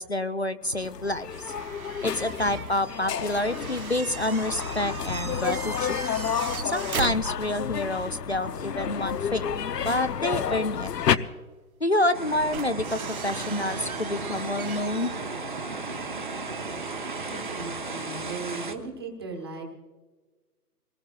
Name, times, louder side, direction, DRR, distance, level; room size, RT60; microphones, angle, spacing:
voice 1, 0.0-1.5 2.0-6.0 6.6-10.9 11.8-15.1, left 1 dB, 45° left, 13 dB, 0.4 m, -28 dB
sound 1, 0.7-11.2, left 8 dB, 80° left, 0.8 m, -30 dB
sound 2, 1.3-7.8 8.1-8.2 10.2-10.3 12.1-17.9, right 6 dB, 60° right, 1.0 m, -39 dB
sound 3, 12.1-18.8, right 3 dB, 30° right, 0.8 m, -34 dB
voice 2, 17.3-19.6, right 3 dB, 15° right, 1 dB, 1.2 m, -37 dB
23.5 x 19.5 x 2.4 m, 1.3 s
hypercardioid pair, 180°, 47 cm